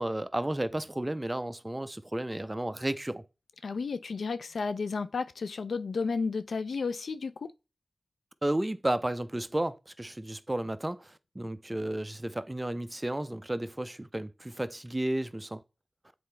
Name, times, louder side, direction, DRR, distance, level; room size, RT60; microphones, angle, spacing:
voice 1, 0.0-3.2 8.4-15.6, right 1 dB, 20° right, 0.6 m, -33 dB
voice 2, 3.6-7.5, left 4 dB, 90° left, 0.4 m, -32 dB
7.8 x 4.2 x 3.3 m
cardioid pair, 50°, 0 cm